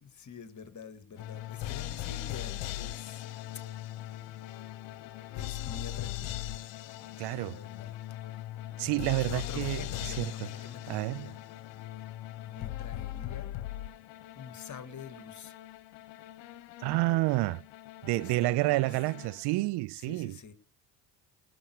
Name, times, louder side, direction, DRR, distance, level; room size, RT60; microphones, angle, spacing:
voice 1, 0.0-3.3 5.3-6.4 7.4-8.0 9.2-11.4 12.5-13.5 14.4-15.5 18.1-18.9 20.0-20.5, left 6 dB, 40° left, 2.1 m, -47 dB
sound 1, 1.2-19.7, left 14 dB, 75° left, 1.2 m, -40 dB
voice 2, 7.2-7.6 8.8-9.9 10.2-10.5 10.9-11.3 16.8-17.6 18.0-20.4, right 20 dB, 65° right, 0.5 m, -29 dB
18.0 x 7.4 x 4.8 m
supercardioid pair, 65°, 44 cm